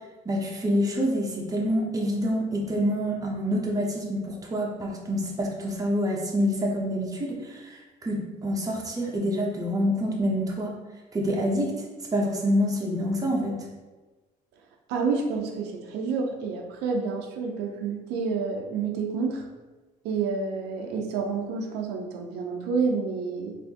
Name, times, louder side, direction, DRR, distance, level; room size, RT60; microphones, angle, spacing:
voice 1, 0.2-10.7 11.1-11.8 12.1-13.6, equal, 20° right, -1 dB, 0.8 m, -27 dB
voice 2, 14.9-19.4 20.0-23.6, right 5 dB, 85° right, 2 dB, 0.5 m, -29 dB
4.2 x 2.6 x 2.8 m, 1.2 s
cardioid pair, 110°, 17 cm